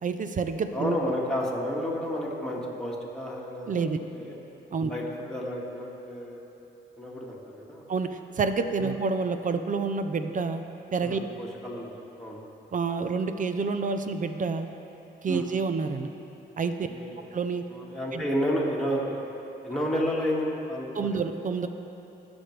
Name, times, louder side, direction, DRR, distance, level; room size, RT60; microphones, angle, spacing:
voice 1, 0.0-0.9 3.7-4.0 4.7-4.9 7.9-10.6 10.9-11.2 12.7-14.7 15.2-16.1 16.6-16.9 17.3-17.7 18.1-18.2 20.9-21.7, right 4 dB, 45° right, 8 dB, 0.6 m, -28 dB
voice 2, 0.7-3.8 4.1-4.4 4.9-5.0 5.3-6.4 7.0-7.8 8.8-9.0 11.0-12.4 15.3-15.5 16.8-17.3 17.7-19.2 19.6-21.2, equal, 5° left, -5 dB, 1.9 m, -31 dB
17.0 x 6.1 x 3.3 m, 2.9 s
cardioid pair, 80°, 19 cm